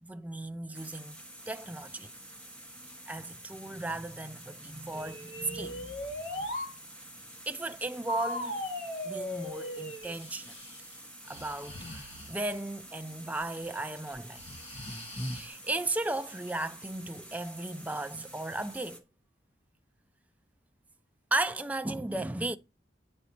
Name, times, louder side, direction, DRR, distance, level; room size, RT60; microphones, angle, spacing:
voice 1, 0.0-2.1 3.1-6.0 6.4-6.5 7.5-8.6 9.0-10.5 11.3-14.4 15.3-19.0 21.3-22.6, right 2 dB, 10° right, 0.4 m, -35 dB
sound 1, 0.7-19.0, right 1 dB, 5° left, 1.3 m, -49 dB
sound 2, 4.9-6.7 8.1-10.1, left 1 dB, 70° left, 2.2 m, -37 dB
Breathing, 10.0-12.6 13.4-13.8 14.1-15.5, equal, 35° left, 1.3 m, -43 dB
9.2 x 5.4 x 4.4 m
head